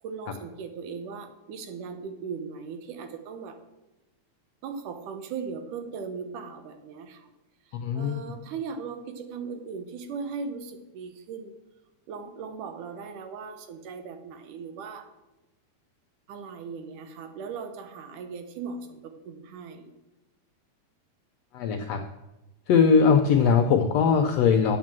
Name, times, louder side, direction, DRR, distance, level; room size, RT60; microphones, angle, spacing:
voice 1, 0.0-3.6 4.6-7.3 7.7-11.5 12.1-15.1 16.3-19.9, right 5 dB, 80° right, 7 dB, 2.5 m, -38 dB
voice 2, 7.7-8.2 21.5-22.0 22.7-24.8, left 6 dB, 80° left, 5 dB, 1.5 m, -20 dB
8.4 x 7.4 x 7.5 m, 1.0 s
omnidirectional pair, 3.6 m